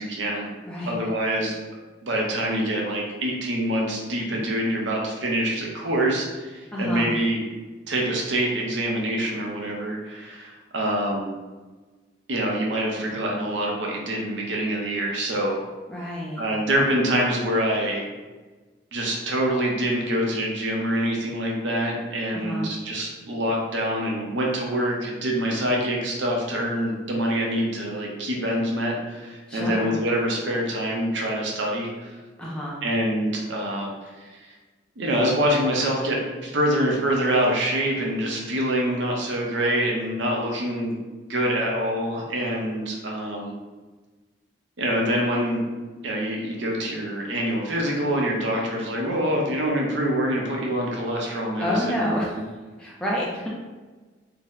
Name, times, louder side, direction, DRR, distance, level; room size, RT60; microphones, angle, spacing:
voice 1, 0.0-0.5 0.9-1.6 2.0-7.4 7.9-11.3 12.3-15.6 16.4-18.1 18.9-32.2 32.8-34.5 35.0-40.9 41.3-43.5 44.8-45.7 46.0-52.4, right 1 dB, 80° right, -1 dB, 0.7 m, -25 dB
voice 2, 6.7-7.1 15.9-16.4 22.3-22.7 29.5-29.9 32.4-32.8 51.6-52.4 52.8-53.5, left 1 dB, 5° left, -6 dB, 0.4 m, -28 dB
2.7 x 2.1 x 3.8 m, 1.3 s
head